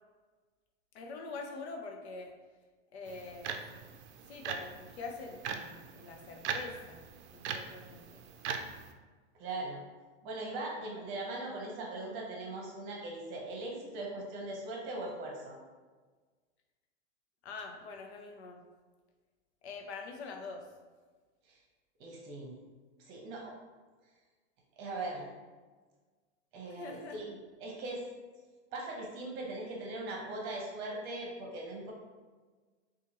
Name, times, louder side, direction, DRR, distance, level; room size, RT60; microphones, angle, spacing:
voice 1, 0.9-2.3 2.9-3.7 4.3-7.0 7.3-8.2 17.4-18.6 19.6-20.6 26.7-27.2, left 4 dB, 65° left, 3 dB, 0.7 m, -44 dB
sound 1, 3.1-8.9, right 6 dB, 70° right, 0.5 m, -41 dB
voice 2, 9.3-9.8 10.2-15.6 21.5-21.6 22.0-22.5 23.0-23.5 24.8-25.3 26.5-28.1 28.7-31.9, right 2 dB, 35° right, -1 dB, 0.9 m, -40 dB
4.3 x 2.4 x 2.9 m, 1.4 s
hypercardioid pair, 135°, 35 cm